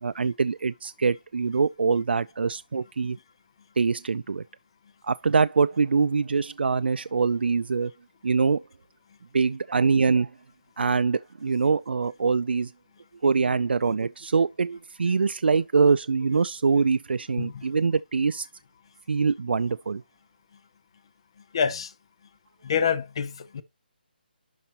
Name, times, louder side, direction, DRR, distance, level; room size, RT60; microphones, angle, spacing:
voice 1, 0.0-3.2 3.8-4.4 5.0-7.9 8.2-8.6 9.3-10.3 10.8-12.7 13.2-18.5 19.1-20.0, right 5 dB, 90° right, 0.4 m, -24 dB
voice 2, 21.5-21.9 22.6-23.6, left 7 dB, 30° left, 0.6 m, -27 dB
11.5 x 4.4 x 2.9 m
hypercardioid pair, 175°, 5 cm